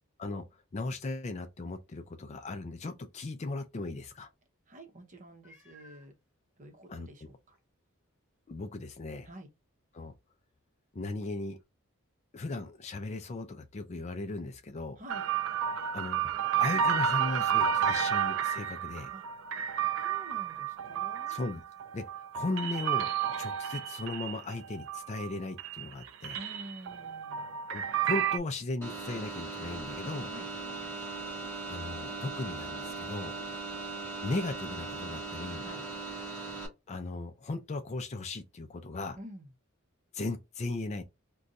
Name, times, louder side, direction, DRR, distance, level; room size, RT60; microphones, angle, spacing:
voice 1, 0.7-4.3 6.9-7.1 8.5-9.3 9.9-10.1 10.9-11.6 12.3-15.0 15.9-19.1 21.3-21.6 21.9-22.1 22.3-26.4 27.7-30.3 31.7-33.3 34.2-35.6 36.9-39.2 40.1-41.0, left 2 dB, 35° left, 0.4 m, -37 dB
voice 2, 4.7-6.1 6.6-7.6 9.2-9.5 15.0-15.3 19.1-19.3 20.0-21.3 26.3-27.6 30.3-30.5 35.6-35.9 39.1-39.5, right 1 dB, 40° right, 0.8 m, -49 dB
Meow, 5.4-6.1 6.9-7.0 7.5-7.6 11.6-11.7, equal, 10° right, 1.1 m, -57 dB
sound 1, 15.1-25.3 25.6-28.4, right 8 dB, 65° right, 0.3 m, -31 dB
sound 2, 28.8-36.7, right 3 dB, 10° left, 1.0 m, -39 dB
2.5 x 2.3 x 3.9 m
head